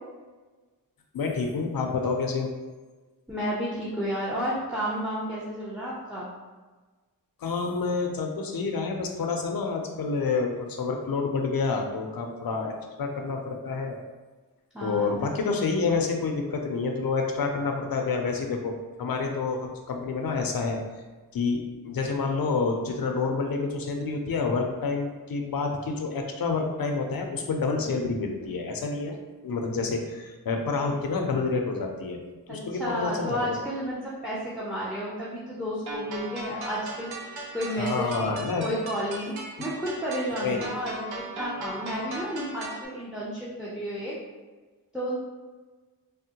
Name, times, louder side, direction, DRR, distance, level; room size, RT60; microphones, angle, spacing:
voice 1, 1.1-2.5 7.4-14.0 14.8-20.8 21.3-29.1 29.4-32.2 32.5-33.4 37.8-38.7 40.4-40.8, left 4 dB, 65° left, 3 dB, 0.5 m, -28 dB
voice 2, 3.3-6.3 14.7-15.1 32.5-38.3 38.6-44.2 44.9-45.1, equal, ahead, -6 dB, 0.6 m, -32 dB
sound 1, 35.9-42.9, right 2 dB, 90° right, 0.6 m, -38 dB
3.5 x 2.1 x 2.8 m, 1.3 s
wide cardioid pair, 70°, 37 cm